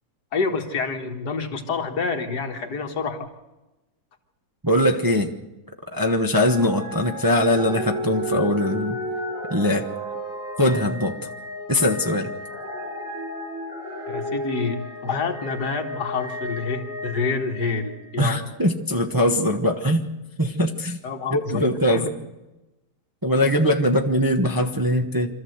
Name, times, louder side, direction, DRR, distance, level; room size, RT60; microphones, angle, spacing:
voice 1, 0.3-3.3 14.1-18.4 21.0-22.1, left 4 dB, 80° left, 4 dB, 2.3 m, -28 dB
voice 2, 4.6-5.3 5.9-9.0 9.5-9.9 10.6-11.2 11.7-12.3 18.2-20.0 20.4-21.0 21.3-22.0 23.2-25.3, left 1 dB, 15° right, 2 dB, 0.9 m, -21 dB
sound 1, 6.4-18.3 19.0-19.1, equal, 50° right, 3.6 m, -33 dB
25.5 x 13.5 x 8.0 m, 1.0 s
omnidirectional pair, 1.8 m